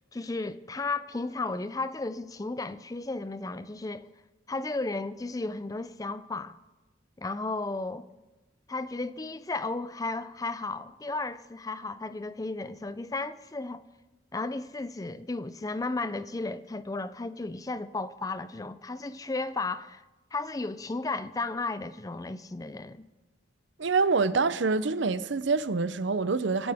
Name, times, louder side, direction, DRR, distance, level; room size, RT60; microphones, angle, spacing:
voice 1, 0.1-4.1 4.5-6.6 7.2-8.1 8.7-13.8 14.3-20.0 20.3-23.1, left 3 dB, 20° left, 0.4 m, -34 dB
voice 2, 23.8-26.7, right 4 dB, 70° right, 0.6 m, -26 dB
25.0 x 11.5 x 3.5 m
head